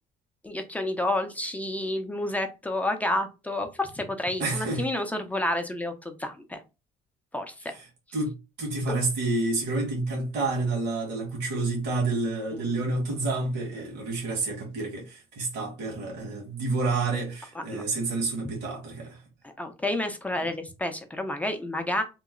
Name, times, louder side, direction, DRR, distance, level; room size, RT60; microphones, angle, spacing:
voice 1, 0.4-6.6 7.3-7.7 12.5-12.7 17.5-17.8 18.4-18.5 19.4-22.0, left 1 dB, 10° left, 0.5 m, -30 dB
voice 2, 4.4-4.9 7.7-7.9 8.1-19.2, right 3 dB, 80° right, 1.4 m, -29 dB
2.9 x 2.0 x 3.6 m
cardioid pair, 110°, 17 cm